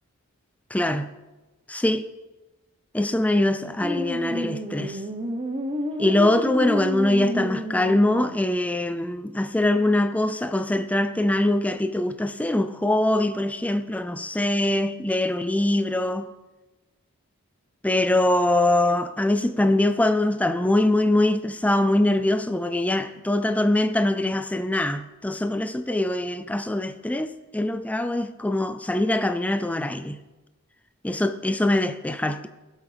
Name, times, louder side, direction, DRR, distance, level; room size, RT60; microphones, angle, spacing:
voice 1, 0.7-1.1 1.7-2.1 2.9-5.0 6.0-16.3 17.8-30.2 31.0-32.5, left 1 dB, 5° left, 0.4 m, -23 dB
sound 1, 3.8-8.6, equal, 25° right, 0.9 m, -31 dB
18.5 x 8.2 x 3.4 m
head